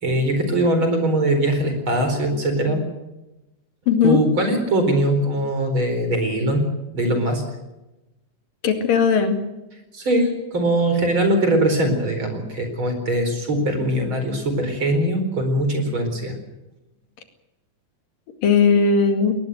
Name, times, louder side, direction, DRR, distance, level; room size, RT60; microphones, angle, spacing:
voice 1, 0.0-2.8 4.0-6.7 6.9-7.4 9.9-16.3, right 1 dB, 35° right, 6 dB, 5.0 m, -21 dB
voice 2, 3.9-4.2 8.6-9.4 18.4-19.3, left 5 dB, 90° left, 6 dB, 4.0 m, -17 dB
20.5 x 19.5 x 7.9 m, 0.97 s
omnidirectional pair, 3.8 m